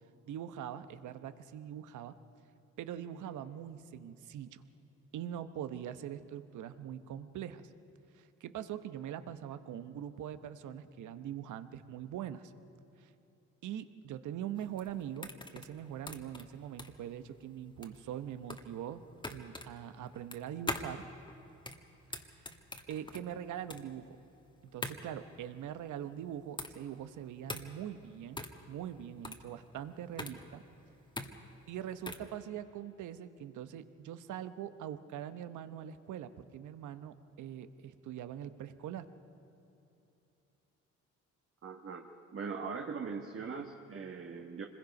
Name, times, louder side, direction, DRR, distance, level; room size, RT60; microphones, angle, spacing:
voice 1, 0.3-2.1 2.8-4.6 5.1-7.7 8.1-12.5 13.0-13.1 13.6-19.0 19.3-21.1 22.2-22.4 22.9-24.2 24.7-28.4 28.7-30.6 31.7-39.0, right 10 dB, 75° right, 11 dB, 1.0 m, -42 dB
sound 1, 14.6-32.3, left 2 dB, 15° left, 1.5 m, -44 dB
voice 2, 41.6-42.1 42.3-44.6, right 5 dB, 45° right, 2 dB, 1.4 m, -40 dB
25.5 x 21.0 x 5.3 m, 3.0 s
cardioid pair, 90°, 30 cm